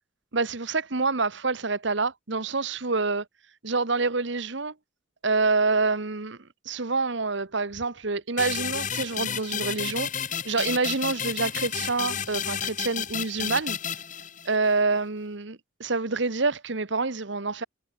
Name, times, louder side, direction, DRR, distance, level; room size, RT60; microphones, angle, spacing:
voice 1, 0.3-3.2 3.6-4.7 5.2-6.4 6.6-10.1 10.4-13.8 14.4-15.5 15.8-17.6, right 3 dB, 60° right, 1.2 m, -27 dB
sound 1, 8.4-14.7, left 8 dB, 35° left, 1.8 m, -31 dB
head